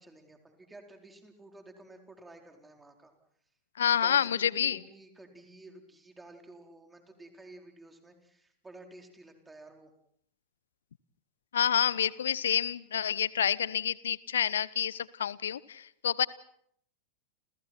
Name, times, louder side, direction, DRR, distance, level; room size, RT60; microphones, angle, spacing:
voice 1, 0.0-3.1 4.0-9.9, right 2 dB, 10° right, 4 dB, 4.3 m, -52 dB
voice 2, 3.8-4.8 11.5-16.3, left 9 dB, 65° left, 21 dB, 0.9 m, -28 dB
30.0 x 29.5 x 4.5 m, 0.69 s
figure-of-eight pair, 90°, 0 cm